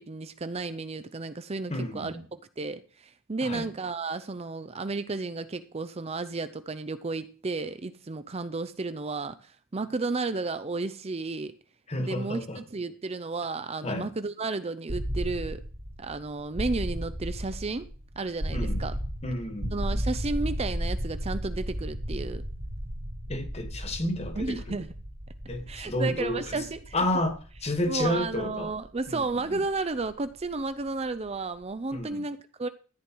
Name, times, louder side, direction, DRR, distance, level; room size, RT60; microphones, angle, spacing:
voice 1, 0.0-2.1 2.6-11.5 12.0-15.6 16.0-17.9 18.2-19.0 19.7-22.4 24.4-24.9 25.7-26.9 27.9-32.7, right 3 dB, 30° right, 0.5 m, -33 dB
voice 2, 1.7-2.2 3.4-3.7 11.9-12.6 13.8-14.1 18.5-18.9 19.2-19.8 23.3-24.8 25.5-26.6 26.9-28.7 29.1-29.2 29.5-29.6 31.9-32.2, left 1 dB, 30° left, 1.8 m, -31 dB
sound 1, 14.9-30.7, equal, 65° right, 2.8 m, -35 dB
13.5 x 9.3 x 4.6 m
head